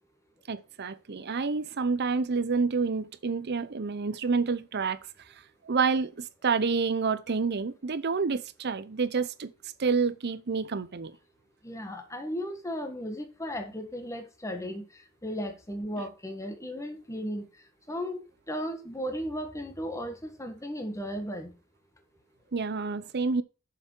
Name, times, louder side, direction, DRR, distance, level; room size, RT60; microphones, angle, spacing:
voice 1, 0.5-5.0 5.6-9.5 9.8-11.1 22.5-23.4, right 4 dB, 50° right, 0.6 m, -28 dB
voice 2, 11.6-14.8 15.2-17.4 17.9-21.5, equal, 15° left, 1.4 m, -35 dB
7.2 x 6.9 x 4.5 m
head